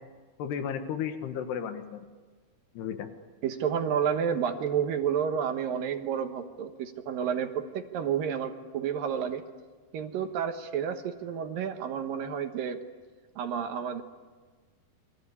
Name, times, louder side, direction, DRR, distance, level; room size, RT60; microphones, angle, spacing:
voice 1, 0.4-2.1 2.8-3.1, left 8 dB, 85° left, 7 dB, 3.7 m, -34 dB
voice 2, 3.4-9.4 9.9-12.8 13.4-14.0, right 8 dB, 70° right, 7 dB, 2.8 m, -30 dB
29.0 x 23.0 x 8.6 m, 1.4 s
omnidirectional pair, 4.6 m